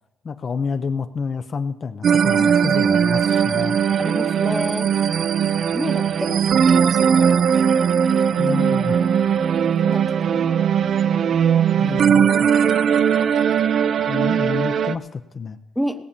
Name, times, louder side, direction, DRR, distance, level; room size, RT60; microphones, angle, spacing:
voice 1, 0.2-3.8 8.4-9.0 11.7-12.3 14.1-15.6, left 5 dB, 45° left, 9 dB, 0.6 m, -28 dB
sound 1, 2.0-15.0, right 7 dB, 60° right, 0.5 m, -19 dB
voice 2, 4.0-4.9 5.6-7.6 8.0-9.1 9.7-10.7 11.8-11.9 14.0-14.2 15.8-16.0, equal, ahead, 8 dB, 0.9 m, -31 dB
16.5 x 7.3 x 6.8 m, 0.97 s
cardioid pair, 90°, 0 cm